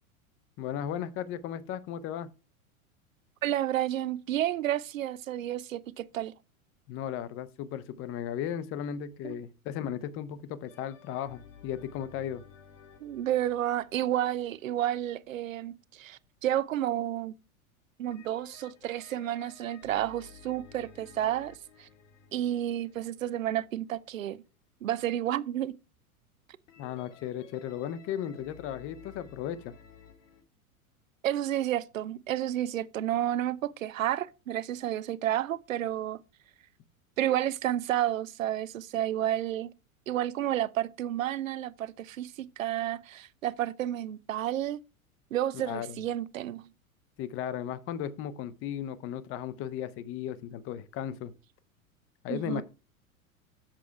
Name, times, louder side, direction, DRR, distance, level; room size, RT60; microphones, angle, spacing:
voice 1, 0.6-2.3 6.9-12.4 26.8-29.7 45.6-46.0 47.2-51.3 52.2-52.6, left 10 dB, 30° left, 0.8 m, -36 dB
voice 2, 3.4-6.3 9.2-9.4 13.0-17.3 18.0-21.9 22.3-24.4 24.8-25.7 31.2-36.2 37.2-39.7 40.1-44.8 45.3-46.7 52.3-52.6, right 12 dB, 65° right, 0.7 m, -31 dB
sound 1, 10.7-15.6 18.1-24.1 26.7-30.4, left 7 dB, 60° left, 1.7 m, -55 dB
7.5 x 6.1 x 4.6 m
figure-of-eight pair, 90°, 43 cm